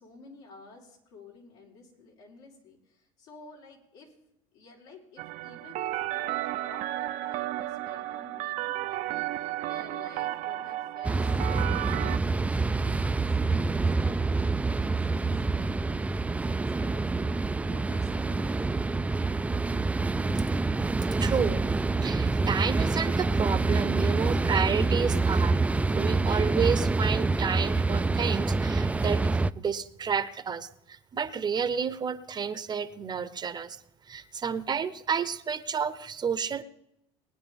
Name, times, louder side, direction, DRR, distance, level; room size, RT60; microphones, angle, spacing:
voice 1, 0.0-4.2 4.5-19.0, left 3 dB, 85° left, -3 dB, 4.0 m, -52 dB
sound 1, 5.2-12.2, right 15 dB, 65° right, 0.6 m, -33 dB
sound 2, 11.0-29.5, right 3 dB, 10° right, 0.3 m, -26 dB
voice 2, 21.2-21.6 22.0-25.6 25.9-29.2 29.6-33.8 34.1-36.6, right 6 dB, 30° right, 13 dB, 0.8 m, -30 dB
21.0 x 9.4 x 3.5 m, 0.83 s
supercardioid pair, 90°, 14 cm